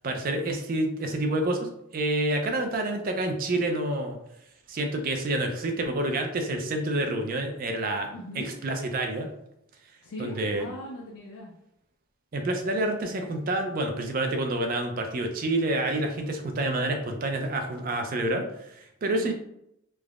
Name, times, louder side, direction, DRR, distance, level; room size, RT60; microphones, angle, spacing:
voice 1, 0.0-4.2 4.7-8.1 8.6-9.3 10.2-10.7 12.3-19.3, right 1 dB, 40° right, 4 dB, 0.4 m, -28 dB
voice 2, 8.1-8.5 10.0-11.5 19.2-19.3, left 1 dB, 90° left, -2 dB, 0.4 m, -39 dB
3.3 x 2.0 x 2.4 m, 0.78 s
head